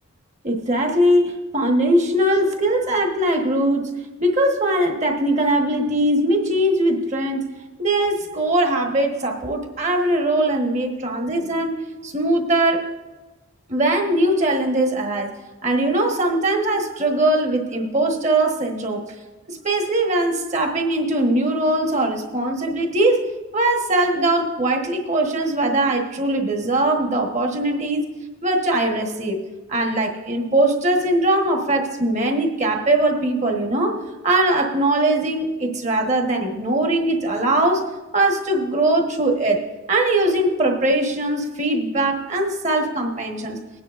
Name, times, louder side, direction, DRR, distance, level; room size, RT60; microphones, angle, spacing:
voice 1, 0.4-3.9 4.2-7.5 7.8-12.8 13.7-15.3 15.6-19.0 19.5-23.2 23.5-28.1 28.4-29.4 29.7-34.0 34.2-37.8 38.1-39.6 39.9-43.6, right 1 dB, 35° right, 2 dB, 1.3 m, -21 dB
21.5 x 9.4 x 2.5 m, 1.2 s
head